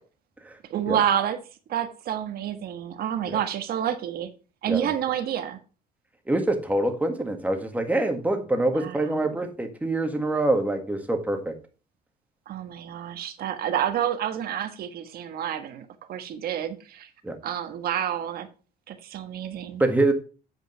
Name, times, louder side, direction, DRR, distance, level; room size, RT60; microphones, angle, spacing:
voice 1, 0.7-1.4 1.7-4.3 4.6-5.6 8.7-9.1 12.5-17.1 17.4-18.5 18.9-19.8, right 10 dB, 65° right, 1.4 m, -29 dB
voice 2, 6.3-11.5 17.2-17.4 19.8-20.1, right 2 dB, 10° right, 1.7 m, -25 dB
8.2 x 5.1 x 5.5 m
cardioid pair, 110°, 17 cm